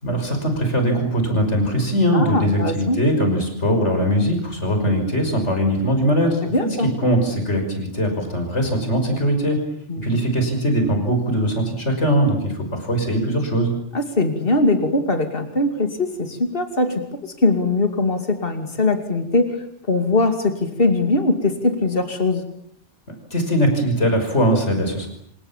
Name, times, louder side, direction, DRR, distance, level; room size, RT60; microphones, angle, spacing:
voice 1, 0.0-6.4 6.8-9.6 10.0-13.7 23.3-25.1, equal, 80° left, 5 dB, 6.1 m, -21 dB
voice 2, 2.1-3.0 6.4-6.9 9.9-10.2 13.9-22.4, left 2 dB, 55° left, 6 dB, 2.9 m, -21 dB
27.5 x 26.0 x 7.3 m, 0.68 s
omnidirectional pair, 1.2 m